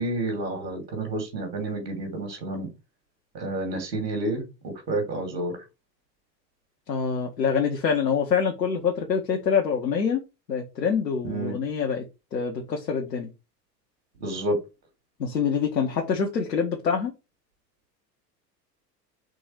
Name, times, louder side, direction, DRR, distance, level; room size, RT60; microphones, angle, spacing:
voice 1, 0.0-2.7 3.3-5.5 11.2-11.5 14.2-14.6, right 2 dB, 80° right, 2.8 m, -29 dB
voice 2, 6.9-10.2 10.5-12.0 12.3-13.3 15.2-17.1, left 6 dB, 75° left, 1.2 m, -25 dB
5.3 x 3.9 x 4.5 m
figure-of-eight pair, 75°, 49 cm